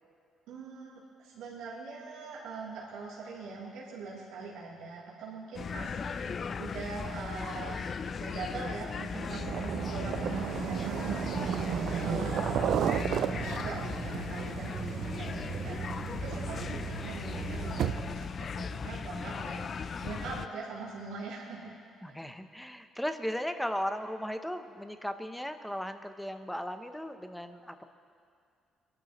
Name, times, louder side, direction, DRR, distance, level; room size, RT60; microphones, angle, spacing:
voice 1, 0.5-9.5 9.9-11.6 12.0-15.8 16.2-21.7, right 3 dB, 90° right, -8 dB, 3.0 m, -42 dB
sound 1, 5.5-20.5, left 5 dB, 45° left, 0.4 m, -37 dB
sound 2, 9.2-18.3, right 10 dB, 70° right, 0.3 m, -34 dB
voice 2, 22.0-27.8, equal, 5° left, 8 dB, 0.8 m, -36 dB
25.0 x 11.5 x 3.1 m, 2.3 s
cardioid pair, 95°, 0 cm